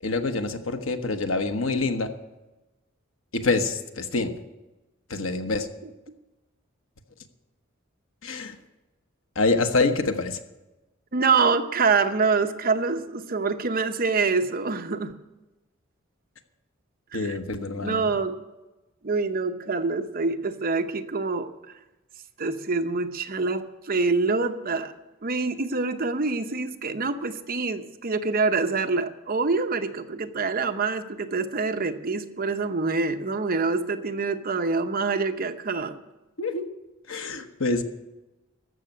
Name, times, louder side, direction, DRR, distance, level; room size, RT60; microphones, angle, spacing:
voice 1, 0.0-2.1 3.3-4.4 5.1-5.7 8.2-8.6 9.3-10.4 17.1-18.1 36.4-36.7 37.1-37.8, left 3 dB, 70° left, 7 dB, 1.2 m, -26 dB
voice 2, 11.1-15.1 17.1-17.4 17.8-18.3 19.0-21.5 22.4-24.9 25.2-36.0, right 4 dB, 45° right, 7 dB, 0.8 m, -26 dB
14.0 x 6.6 x 9.2 m, 1.0 s
head